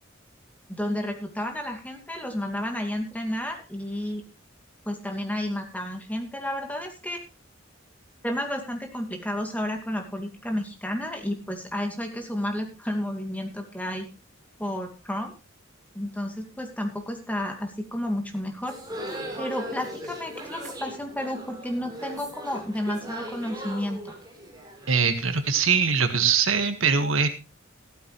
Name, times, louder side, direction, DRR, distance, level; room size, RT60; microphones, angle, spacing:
voice 1, 0.7-4.2 4.9-7.2 8.2-14.1 14.6-15.3 15.9-18.8 19.4-24.1, left 1 dB, 10° left, 3 dB, 2.6 m, -31 dB
sound 1, 18.6-25.6, equal, 20° right, 4.0 m, -38 dB
voice 2, 24.9-27.3, right 5 dB, 80° right, 9 dB, 1.8 m, -22 dB
15.0 x 13.5 x 3.3 m, 0.27 s
head